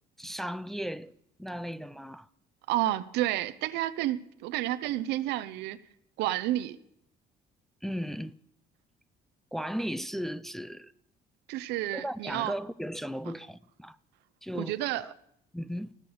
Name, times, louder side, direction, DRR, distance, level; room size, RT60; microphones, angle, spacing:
voice 1, 0.2-1.1 1.4-2.3 7.8-8.4 9.5-10.9 11.9-14.0 14.4-15.1 15.5-15.9, equal, ahead, 0.4 m, -36 dB
voice 2, 2.7-5.8 6.2-6.8 11.5-12.5 14.5-15.1, right 15 dB, 90° right, 0.7 m, -30 dB
18.0 x 6.8 x 8.0 m
cardioid pair, 110°, 17 cm